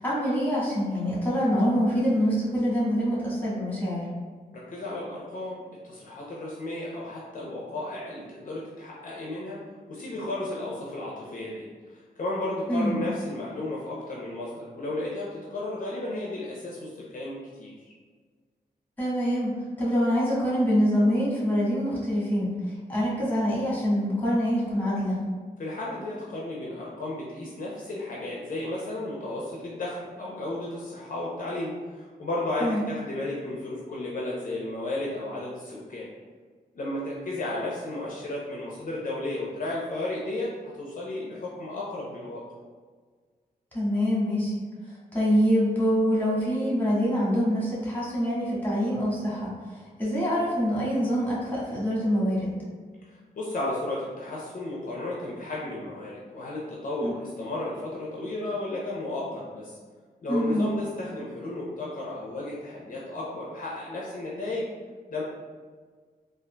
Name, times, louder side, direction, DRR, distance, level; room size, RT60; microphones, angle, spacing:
voice 1, 0.0-4.0 12.7-13.0 19.0-19.5 19.8-25.2 32.6-32.8 43.7-44.6 44.9-52.5 57.0-57.1 60.3-60.6, equal, 10° left, -7 dB, 1.4 m, -25 dB
voice 2, 4.5-9.6 9.9-17.9 25.6-36.1 36.8-42.4 53.1-59.8 60.2-64.7 65.1-65.2, left 2 dB, 55° left, -4 dB, 0.6 m, -33 dB
3.7 x 2.4 x 2.2 m, 1.5 s
cardioid pair, 85°, 16 cm